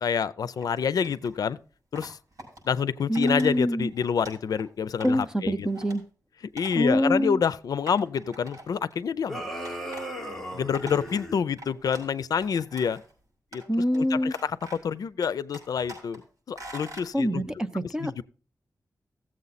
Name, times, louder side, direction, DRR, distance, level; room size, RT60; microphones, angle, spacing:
voice 1, 0.0-1.6 1.9-2.2 2.6-5.7 6.5-9.4 10.5-13.0 13.5-13.6 13.9-16.2 16.5-17.4 17.8-18.2, left 7 dB, 80° left, 0.4 m, -28 dB
Telephone Handling, 0.6-1.4 1.9-2.6 3.1-3.5 3.8-4.6 5.0-5.3 5.7-6.0 6.6-6.8 7.1-7.2 7.9-8.9 9.6-10.1 10.5-12.1 12.4-13.1 13.5-14.0 14.3-14.9 15.2-16.2 16.6-17.1, right 1 dB, 55° right, 6.0 m, -44 dB
voice 2, 3.1-3.9 5.0-6.0 6.7-7.4 13.7-14.3 17.1-18.2, equal, 10° right, 0.6 m, -25 dB
sound 1, 9.3-11.4, equal, 5° left, 1.8 m, -36 dB
16.0 x 7.6 x 4.1 m
wide cardioid pair, 165°, 6 cm